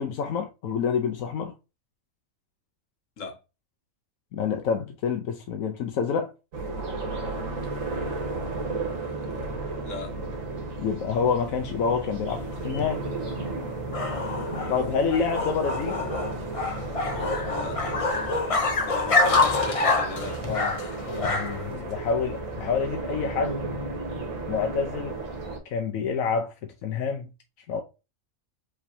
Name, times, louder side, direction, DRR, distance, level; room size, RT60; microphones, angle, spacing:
voice 1, 0.0-1.5 4.3-6.3 10.8-13.0 14.7-16.0 20.5-20.8 21.1-23.6 24.5-25.2 25.7-27.3 27.7-27.8, left 6 dB, 90° left, 1.1 m, -28 dB
sound 1, 6.5-25.6, right 2 dB, 75° right, 1.6 m, -34 dB
voice 2, 9.8-10.2 17.5-17.8 18.9-20.4, left 3 dB, 70° left, 1.5 m, -37 dB
sound 2, 12.3-21.7, left 3 dB, 35° left, 0.5 m, -27 dB
4.9 x 3.6 x 2.7 m
omnidirectional pair, 1.4 m